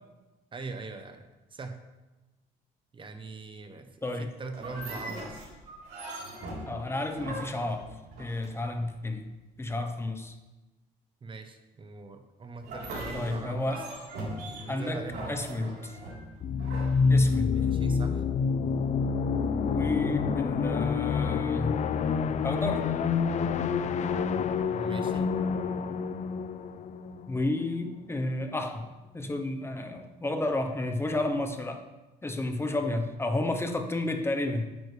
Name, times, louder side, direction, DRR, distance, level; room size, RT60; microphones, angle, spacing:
voice 1, 0.5-1.8 2.9-5.5 11.2-13.9 14.6-15.4 17.5-18.2 24.7-25.3, right 3 dB, 30° right, 7 dB, 0.8 m, -41 dB
sound 1, 4.5-8.8 12.6-17.7, right 1 dB, 75° right, 3.6 m, -40 dB
voice 2, 6.7-7.9 8.2-9.3 9.6-10.3 13.1-13.8 14.7-15.9 17.1-17.6 19.6-21.8 22.4-22.9 27.3-28.9 29.1-31.8 32.2-34.7, left 2 dB, 15° left, 5 dB, 0.9 m, -31 dB
sound 2, 16.4-27.9, left 5 dB, 45° left, 0.5 m, -28 dB
9.5 x 9.2 x 3.3 m, 1.1 s
cardioid pair, 110°, 17 cm